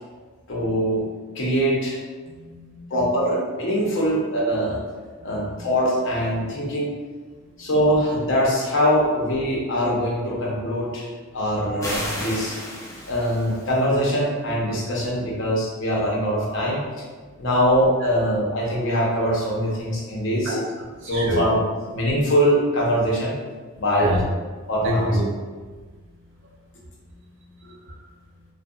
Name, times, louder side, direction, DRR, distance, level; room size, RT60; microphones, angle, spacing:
voice 1, 0.5-1.1 1.3-2.0 2.9-4.8 5.2-6.9 7.6-11.1 11.3-12.6 13.1-17.0 17.4-20.5 21.1-21.6 21.9-23.3 23.8-24.1 24.7-25.1, equal, 60° left, -4 dB, 0.6 m, -22 dB
voice 2, 2.2-3.3 5.2-5.6 7.3-7.7 11.6-11.7 17.2-17.3 20.4-20.6 20.9-21.5 24.0-24.2 24.8-25.3 25.6-25.7 26.4-26.5 27.6-28.0, equal, 60° right, -2 dB, 0.5 m, -28 dB
sound 1, 11.8-13.8, left 1 dB, 15° left, 0.4 m, -32 dB
2.7 x 2.1 x 2.4 m, 1.4 s
head